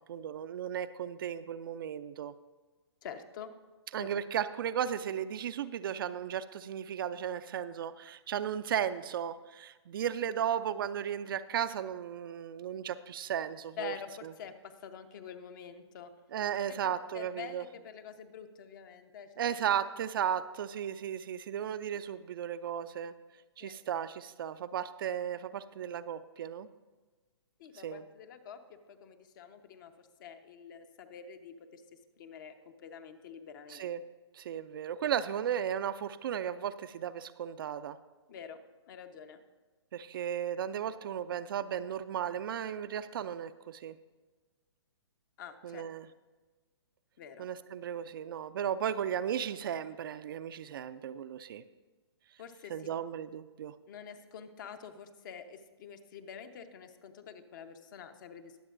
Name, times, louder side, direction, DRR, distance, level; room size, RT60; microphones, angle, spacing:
voice 1, 0.1-2.3 3.9-13.9 16.3-17.6 19.4-23.1 23.6-26.7 27.8-28.0 33.7-34.0 34.3-38.0 39.9-44.0 45.6-46.1 47.4-51.6 52.7-53.7, right 9 dB, 50° right, 12 dB, 0.4 m, -35 dB
voice 2, 3.0-3.5 4.0-4.1 13.8-16.1 17.1-19.3 23.6-23.8 27.6-28.6 28.9-33.9 38.3-39.4 45.4-45.8 47.2-47.5 52.4-52.9 53.9-58.6, left 7 dB, 45° left, 8 dB, 1.0 m, -47 dB
21.5 x 7.6 x 2.6 m, 1.3 s
hypercardioid pair, 135°, 15 cm